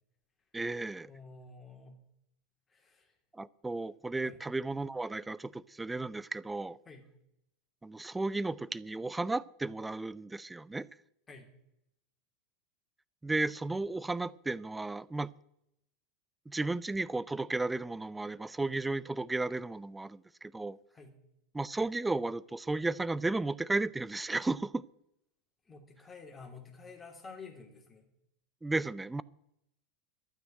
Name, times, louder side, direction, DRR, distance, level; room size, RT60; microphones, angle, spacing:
voice 1, 0.5-1.1 3.4-6.8 7.8-10.9 13.2-15.3 16.5-20.8 21.5-24.8 28.6-29.2, right 2 dB, 10° right, 22 dB, 0.4 m, -34 dB
voice 2, 1.1-2.0 2.7-3.1 4.2-4.4 6.8-7.0 11.3-11.5 20.9-21.1 25.7-28.1, left 4 dB, 20° left, 3 dB, 3.0 m, -50 dB
12.5 x 6.3 x 8.9 m, 0.81 s
figure-of-eight pair, 85°, 0 cm